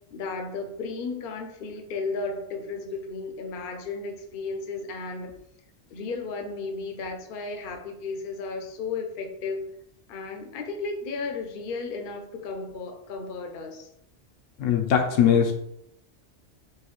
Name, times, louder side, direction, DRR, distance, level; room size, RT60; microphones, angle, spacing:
voice 1, 0.1-5.3 5.9-9.6 10.1-13.9, left 4 dB, 55° left, 4 dB, 0.7 m, -34 dB
voice 2, 14.6-15.5, left 8 dB, 90° left, 2 dB, 1.1 m, -20 dB
4.7 x 2.7 x 3.0 m, 0.74 s
omnidirectional pair, 1.2 m